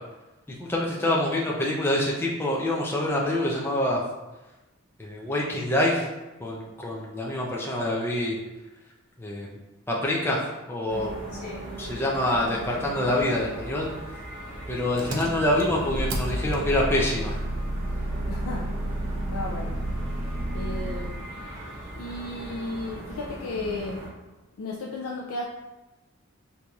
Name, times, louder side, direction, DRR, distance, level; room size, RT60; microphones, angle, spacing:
voice 1, 0.5-4.0 5.0-6.1 6.4-8.4 9.2-9.6 9.9-10.4 10.7-11.1 11.8-13.9 14.7-17.4, left 1 dB, 10° left, -3 dB, 0.4 m, -26 dB
sound 1, 10.9-24.1, right 1 dB, 40° right, 1.1 m, -39 dB
Engine, 15.0-21.3, right 1 dB, 65° right, 0.5 m, -31 dB
voice 2, 18.3-19.8 20.5-21.3 22.0-24.1 24.6-25.4, left 2 dB, 90° left, -2 dB, 0.4 m, -35 dB
4.3 x 2.6 x 2.3 m, 1.1 s
head